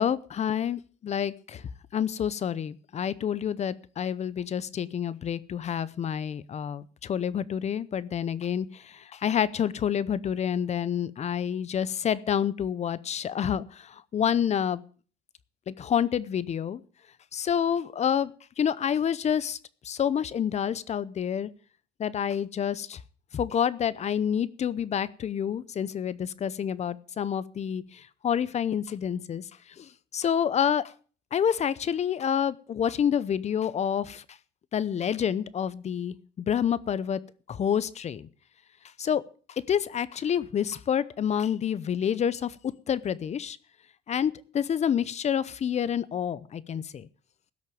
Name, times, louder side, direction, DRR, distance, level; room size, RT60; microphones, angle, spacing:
voice 1, 0.0-1.6 1.9-14.8 15.7-16.8 17.3-18.3 18.6-19.6 19.8-21.5 22.0-23.0 23.3-27.8 28.2-29.4 29.8-30.8 31.3-34.2 34.7-37.2 37.5-38.3 39.0-39.2 39.7-42.5 42.9-43.6 44.1-47.1, left 8 dB, 40° left, 18 dB, 0.8 m, -28 dB
16.5 x 6.4 x 7.0 m, 0.41 s
cardioid pair, 110°, 17 cm